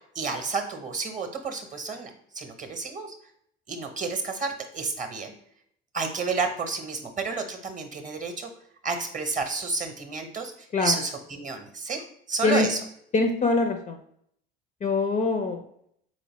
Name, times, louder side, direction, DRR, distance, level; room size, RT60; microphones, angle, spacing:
voice 1, 0.1-3.1 3.7-5.3 5.9-8.5 8.8-10.5 10.8-12.0 12.3-12.8, right 4 dB, 25° right, 6 dB, 0.8 m, -30 dB
voice 2, 13.1-14.0 14.8-15.6, left 3 dB, 25° left, 6 dB, 0.4 m, -23 dB
4.0 x 3.0 x 2.9 m, 0.69 s
figure-of-eight pair, 60°, 30 cm